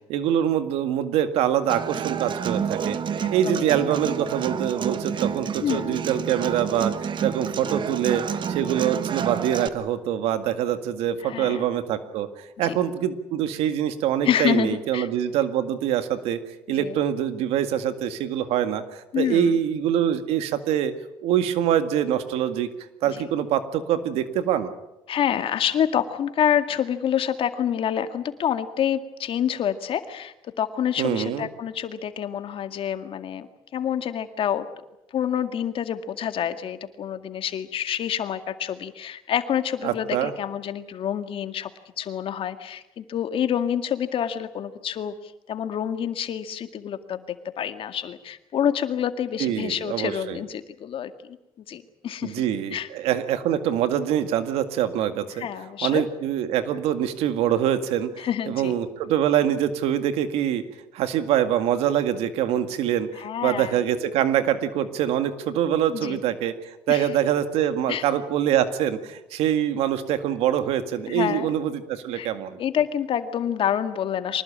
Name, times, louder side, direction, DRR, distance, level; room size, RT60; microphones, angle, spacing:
voice 1, 0.1-3.0 3.3-8.2 8.5-16.4 16.7-20.9 21.2-22.7 23.0-24.7 31.0-31.5 39.8-40.3 49.4-50.4 52.2-55.5 55.8-60.6 60.9-63.1 63.4-72.6, right 10 dB, 90° right, 10 dB, 2.0 m, -24 dB
Human voice / Acoustic guitar, 1.7-9.7, right 7 dB, 55° right, 1.5 m, -29 dB
voice 2, 3.2-3.7 5.6-6.1 8.6-8.7 11.2-11.6 12.6-12.8 14.2-15.1 16.7-17.0 19.1-19.6 23.1-23.3 25.1-33.5 33.7-34.7 35.1-41.7 42.0-47.2 47.6-51.4 51.7-52.4 52.7-52.9 55.4-56.0 58.2-58.7 63.2-63.8 65.9-66.2 66.9-67.1 67.9-68.0 71.1-71.5 72.1-72.3 72.6-74.4, left 9 dB, 65° left, 9 dB, 2.1 m, -27 dB
24.5 x 20.0 x 8.8 m, 0.93 s
cardioid pair, 80°, 10 cm